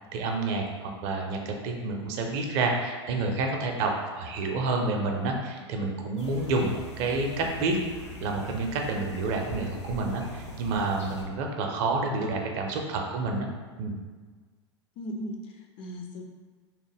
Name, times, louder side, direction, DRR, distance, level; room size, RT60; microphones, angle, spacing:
voice 1, 0.1-7.8 8.2-13.5 13.8-13.9, right 3 dB, 45° right, 2 dB, 0.5 m, -29 dB
sound 1, 6.2-11.2, left 1 dB, 85° left, 0.6 m, -41 dB
voice 2, 15.0-16.2, equal, 35° left, 2 dB, 0.4 m, -38 dB
2.9 x 2.1 x 3.3 m, 1.4 s
figure-of-eight pair, 90°, 15 cm